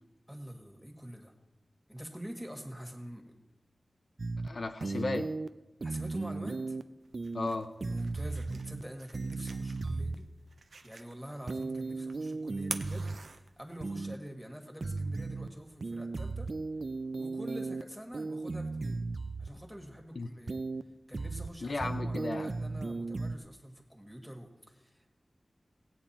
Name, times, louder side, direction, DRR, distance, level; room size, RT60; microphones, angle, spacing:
voice 1, 0.3-1.3 1.9-3.2 5.8-6.8 7.8-10.2 10.8-16.5 17.2-19.1 19.4-20.6 21.1-25.1, equal, ahead, 3 dB, 1.8 m, -45 dB
sound 1, 4.2-4.5 4.8-5.5 5.8-6.8 7.1-7.5 7.8-8.8 9.1-10.2 11.5-13.2 13.8-14.2 14.8-15.5 15.8-17.8 18.1-19.5 20.5-20.8 21.1-21.5 21.8-23.4, right 3 dB, 55° right, 0.4 m, -36 dB
voice 2, 4.4-5.3 7.3-7.7 20.1-20.3 21.6-22.5, left 3 dB, 65° left, 6 dB, 0.6 m, -34 dB
sound 2, 7.0-14.0, right 4 dB, 85° right, 0.7 m, -47 dB
17.0 x 8.6 x 4.3 m, 1.0 s
wide cardioid pair, 75°, 0 cm